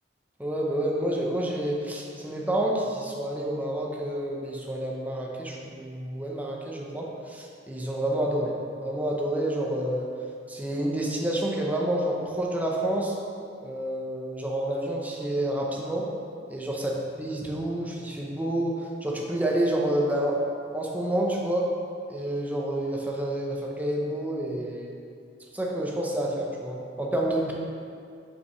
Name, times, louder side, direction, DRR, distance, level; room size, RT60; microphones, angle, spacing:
voice 1, 0.4-8.5 8.8-10.1 10.5-13.2 13.6-16.1 16.5-16.9 17.2-20.4 20.7-21.7 22.1-24.9 25.5-27.5, right 1 dB, 10° right, -2 dB, 0.8 m, -29 dB
6.9 x 5.7 x 3.2 m, 2.4 s
head